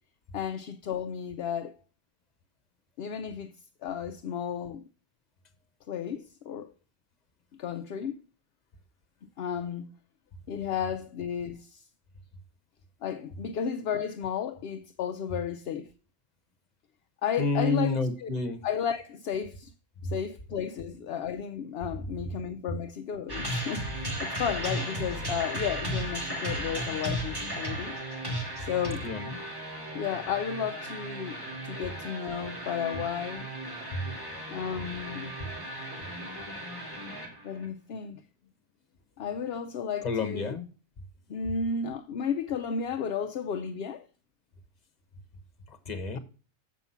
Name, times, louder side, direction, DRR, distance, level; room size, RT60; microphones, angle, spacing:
voice 1, 0.3-1.7 3.0-3.5 3.8-4.8 5.9-6.7 7.5-8.2 9.4-9.9 10.5-11.9 13.0-15.9 17.2-18.3 18.6-19.7 20.0-28.0 28.6-29.1 29.9-31.4 31.6-33.5 34.5-35.3 37.4-38.2 39.2-40.6 41.3-44.0, left 7 dB, 60° left, 0.7 m, -33 dB
voice 2, 17.4-18.6 20.0-20.1 29.0-29.4 33.9-34.1 35.4-35.5 40.0-40.7 45.7-46.2, left 2 dB, 35° left, 1.2 m, -30 dB
sound 1, 23.3-37.6, equal, 15° right, 2.8 m, -35 dB
7.3 x 5.8 x 5.5 m
omnidirectional pair, 1.3 m